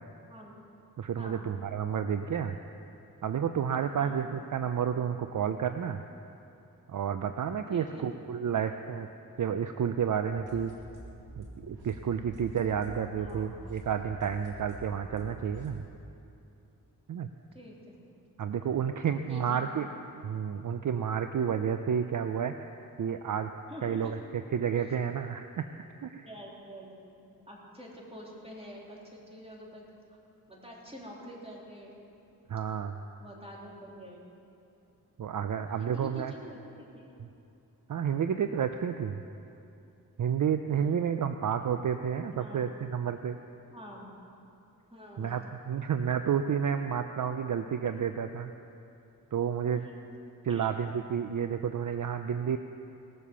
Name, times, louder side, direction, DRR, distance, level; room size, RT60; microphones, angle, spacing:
voice 1, 1.0-2.6 3.2-6.0 6.9-9.1 9.4-10.7 11.4-15.8 17.1-17.3 18.4-19.9 20.2-22.7 23.0-23.5 23.8-24.2 24.5-25.7 26.0-26.3 32.5-33.0 35.2-36.3 37.9-39.2 40.2-43.4 45.2-48.5 49.3-49.9 50.4-52.6, right 8 dB, 55° right, 8 dB, 0.6 m, -30 dB
voice 2, 7.7-8.1 10.5-10.8 13.1-13.5 15.1-15.4 17.5-18.0 19.3-19.7 23.7-24.1 24.7-24.9 26.2-26.9 27.3-29.9 30.5-31.9 32.7-32.8 33.2-34.2 35.8-37.1 40.7-41.3 42.3-42.6 43.7-44.0 44.9-45.4 49.7-50.0 50.5-50.6, equal, 15° right, -3 dB, 3.3 m, -47 dB
sound 1, 10.3-15.7, right 1 dB, 85° right, 2.3 m, -47 dB
19.0 x 7.4 x 6.9 m, 2.7 s
cardioid pair, 65°, 37 cm